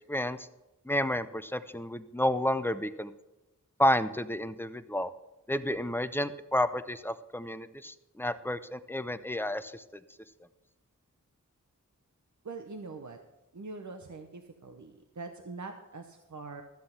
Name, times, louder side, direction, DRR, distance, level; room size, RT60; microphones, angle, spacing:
voice 1, 0.9-3.1 3.8-5.1 5.5-9.8, left 1 dB, 5° left, 11 dB, 0.6 m, -30 dB
voice 2, 12.4-13.2 13.5-16.6, right 3 dB, 65° right, 5 dB, 0.9 m, -43 dB
13.0 x 7.6 x 5.8 m, 0.98 s
wide cardioid pair, 55°, 32 cm